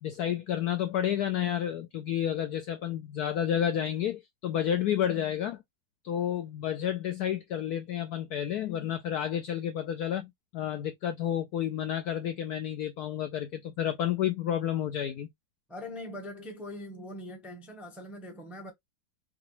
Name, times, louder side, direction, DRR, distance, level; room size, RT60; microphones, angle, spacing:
voice 1, 0.0-5.6 6.0-15.3, left 10 dB, 75° left, 0.9 m, -30 dB
voice 2, 15.7-18.7, left 1 dB, ahead, 0.6 m, -42 dB
5.9 x 2.2 x 3.1 m
omnidirectional pair, 2.1 m